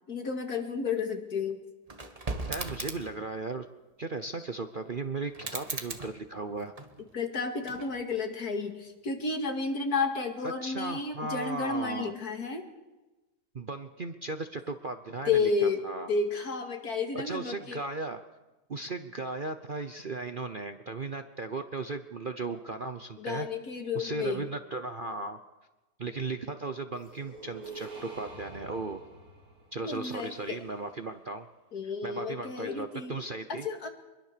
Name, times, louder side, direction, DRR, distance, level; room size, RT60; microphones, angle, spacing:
voice 1, 0.1-1.6 7.1-12.6 15.3-17.8 23.2-24.5 29.8-30.6 31.7-33.2 33.5-33.9, left 4 dB, 65° left, 4 dB, 2.7 m, -31 dB
sound 1, 1.9-3.2 5.3-7.2 7.6-8.3, right 2 dB, 25° right, 1.5 m, -38 dB
voice 2, 2.5-3.7 4.0-6.7 10.4-12.1 13.5-16.1 17.1-18.2 18.7-23.5 23.9-25.4 26.0-29.0 29.7-31.5 32.0-33.7, right 3 dB, 40° right, 8 dB, 0.8 m, -36 dB
sound 2, 26.9-31.0, right 3 dB, 60° right, 4.9 m, -47 dB
24.0 x 22.0 x 6.8 m, 1.1 s
omnidirectional pair, 1.8 m